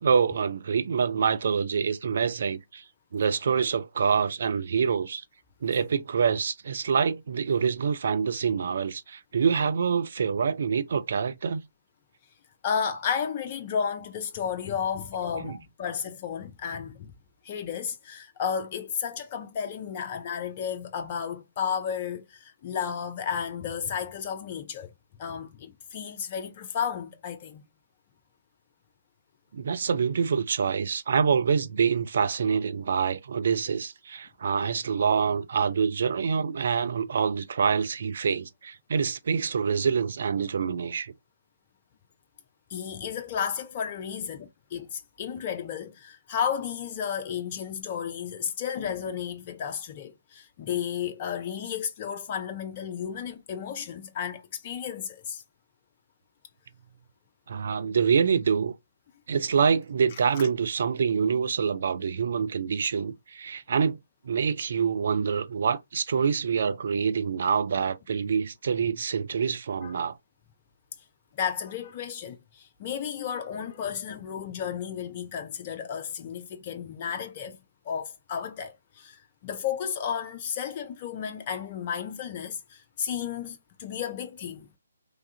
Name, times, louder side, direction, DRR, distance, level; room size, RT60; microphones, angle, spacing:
voice 1, 0.0-2.8 3.1-5.2 5.6-11.6 15.4-15.6 29.5-41.1 57.5-58.7 59.3-64.0 64.2-70.2, right 6 dB, 50° right, 0.4 m, -26 dB
voice 2, 12.6-17.1 17.4-24.9 25.2-27.6 42.7-55.4 60.3-60.4 68.8-68.9 69.8-69.9 71.3-77.6 77.9-84.7, left 7 dB, 30° left, 0.4 m, -33 dB
3.2 x 2.3 x 2.7 m
figure-of-eight pair, 135°, 0 cm